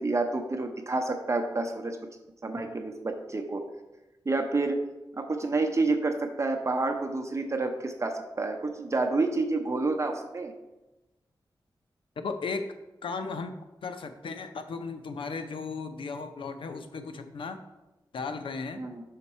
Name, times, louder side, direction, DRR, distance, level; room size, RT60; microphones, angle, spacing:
voice 1, 0.0-2.0 2.4-3.6 4.3-4.8 5.2-10.5 18.8-19.0, right 3 dB, 35° right, 4 dB, 0.7 m, -29 dB
voice 2, 12.2-12.7 13.0-13.5 13.8-17.6 18.1-18.8, left 4 dB, 90° left, 8 dB, 0.6 m, -35 dB
5.8 x 5.4 x 4.2 m, 1.0 s
wide cardioid pair, 80°, 9 cm